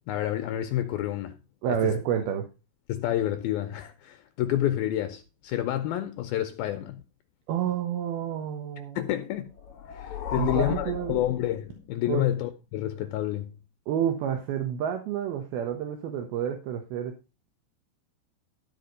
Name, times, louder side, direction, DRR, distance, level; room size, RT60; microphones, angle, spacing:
voice 1, 0.1-1.4 1.7-1.9 2.9-7.0 9.0-9.5 9.9-13.6, left 12 dB, 85° left, 2.2 m, -29 dB
voice 2, 1.6-2.5 7.5-9.0 10.3-11.2 12.1-12.3 13.9-17.1, right 9 dB, 70° right, 2.9 m, -29 dB
sound 1, 9.5-12.1, left 8 dB, 65° left, 2.0 m, -36 dB
13.0 x 5.1 x 5.2 m
omnidirectional pair, 5.1 m